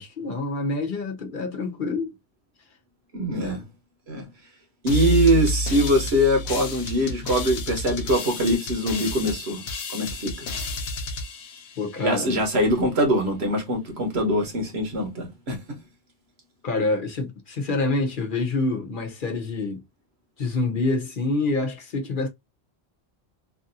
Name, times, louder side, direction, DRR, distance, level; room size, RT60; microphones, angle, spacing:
voice 1, 0.0-2.1 3.4-3.6 11.8-12.3 16.6-19.8 20.4-22.3, left 3 dB, 55° left, 0.9 m, -27 dB
voice 2, 3.1-3.6 4.1-4.3 4.8-9.6 9.9-10.5 12.0-15.6, equal, 75° right, 1.4 m, -23 dB
sound 1, 4.9-12.4, left 3 dB, 85° left, 1.0 m, -30 dB
3.3 x 2.6 x 2.6 m
omnidirectional pair, 1.1 m